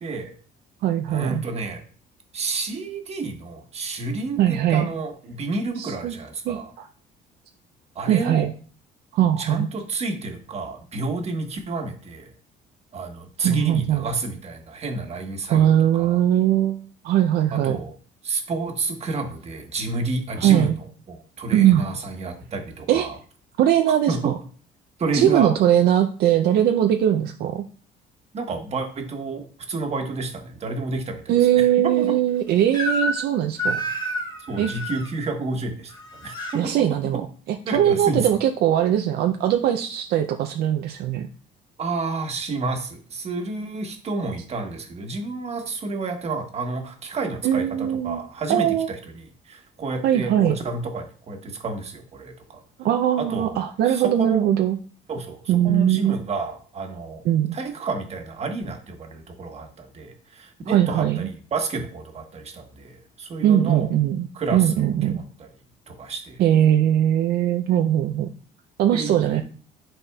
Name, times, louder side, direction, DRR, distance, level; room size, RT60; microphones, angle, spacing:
voice 1, 0.0-0.3 1.1-1.8 2.3-4.4 4.7-6.7 7.9-8.5 9.4-12.3 12.9-16.2 17.5-17.9 18.2-20.7 21.1-23.2 24.1-24.3 25.0-25.5 28.3-32.1 34.5-35.9 36.2-36.9 37.6-38.2 41.8-52.6 53.2-53.6 53.8-54.5 55.1-57.2 57.5-63.9 64.3-64.8 65.4-65.5 65.9-66.4 68.9-69.4, right 3 dB, 40° right, 4 dB, 1.2 m, -30 dB
voice 2, 0.8-1.4 4.4-4.9 5.8-6.2 6.5-6.9 8.1-8.5 9.1-9.7 13.4-14.1 15.5-17.8 20.4-20.8 21.5-21.9 22.9-23.1 23.6-24.4 25.1-27.6 31.3-33.8 34.6-34.7 36.5-37.2 37.5-41.3 47.4-48.2 48.5-48.9 50.0-50.6 52.8-54.8 55.5-56.2 57.2-57.6 60.7-61.3 63.4-65.2 66.4-68.3 68.8-69.4, right 11 dB, 70° right, 6 dB, 0.5 m, -20 dB
Crying sobbing / Screech, 32.7-33.3 33.6-35.1 35.9-36.6, equal, 25° left, 1.4 m, -28 dB
10.0 x 4.1 x 2.3 m, 0.41 s
cardioid pair, 110°, 17 cm